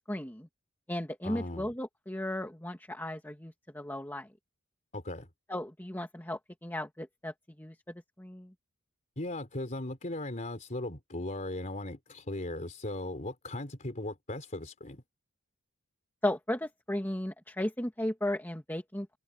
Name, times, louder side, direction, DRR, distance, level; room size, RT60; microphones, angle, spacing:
voice 1, 0.1-0.5 0.9-4.3 5.5-8.5 16.2-19.2, left 1 dB, 10° left, 2.0 m, -35 dB
voice 2, 1.2-1.7 4.9-5.3 9.2-15.0, left 1 dB, 35° left, 3.4 m, -38 dB
head